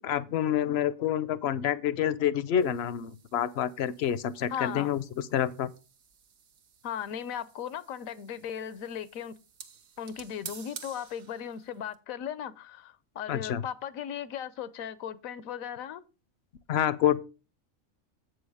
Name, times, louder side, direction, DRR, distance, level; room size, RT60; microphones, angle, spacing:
voice 1, 0.0-5.0 5.3-5.7 13.3-13.6 16.7-17.2, left 10 dB, 65° left, 0.7 m, -28 dB
sound 1, 2.6-12.0, right 7 dB, 90° right, 1.5 m, -51 dB
voice 2, 4.5-4.9 6.8-9.4 10.0-16.0, left 9 dB, 80° left, 1.1 m, -37 dB
7.9 x 6.3 x 4.8 m
omnidirectional pair, 1.4 m